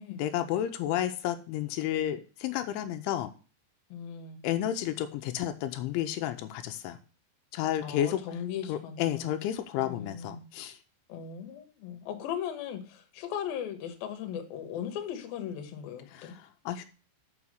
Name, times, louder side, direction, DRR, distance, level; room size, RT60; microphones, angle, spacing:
voice 1, 0.1-3.3 4.4-7.0 7.5-8.2 8.7-10.8 16.1-16.9, left 11 dB, 85° left, 8 dB, 3.1 m, -31 dB
voice 2, 3.9-4.4 7.8-9.4 9.8-10.4 11.1-16.3, left 8 dB, 65° left, 6 dB, 2.6 m, -38 dB
7.1 x 5.8 x 6.3 m, 0.36 s
omnidirectional pair, 5.3 m